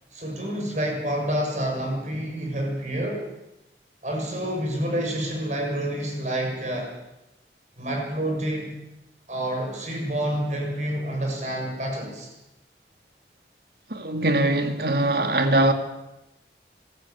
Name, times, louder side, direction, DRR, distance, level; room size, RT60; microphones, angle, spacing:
voice 1, 0.1-3.3 4.0-6.9 7.8-8.7 9.3-12.3, right 1 dB, 40° right, 6.8 m, -28 dB
voice 2, 13.9-15.7, right 1 dB, 60° right, 2.5 m, -22 dB
25.0 x 14.0 x 8.8 m
head